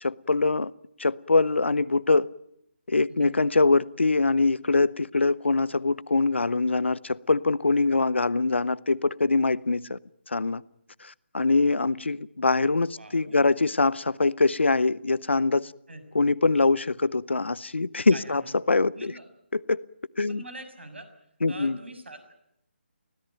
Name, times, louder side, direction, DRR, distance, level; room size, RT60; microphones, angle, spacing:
voice 1, 0.0-0.7 1.0-2.3 2.9-10.0 10.3-10.6 11.0-15.7 16.1-18.4 18.7-19.1 19.5-19.8 20.2-20.4 21.4-21.8, left 3 dB, 70° left, 0.8 m, -23 dB
voice 2, 12.9-13.5 15.9-16.0 18.1-18.5 18.9-19.3 20.2-21.1 21.5-22.3, right 2 dB, 70° right, 6.3 m, -43 dB
24.5 x 17.0 x 9.2 m
figure-of-eight pair, 150°, 6 cm